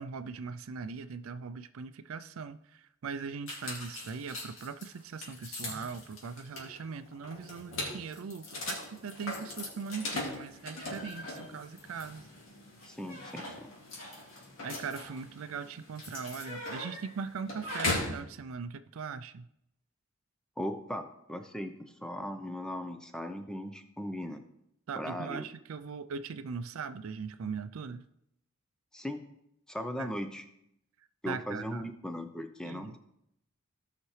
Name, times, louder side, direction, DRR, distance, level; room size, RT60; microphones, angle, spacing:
voice 1, 0.0-12.3 14.6-19.5 24.9-28.0 30.0-30.1 31.3-31.9 32.6-33.0, right 5 dB, 75° right, 11 dB, 0.4 m, -40 dB
sound 1, 3.5-18.2, left 2 dB, 65° left, 2.5 m, -40 dB
voice 2, 12.8-13.7 20.6-24.4 24.9-25.5 28.9-29.3 29.7-30.4 31.2-33.0, equal, 5° left, 7 dB, 0.7 m, -38 dB
16.0 x 5.8 x 3.2 m, 0.79 s
head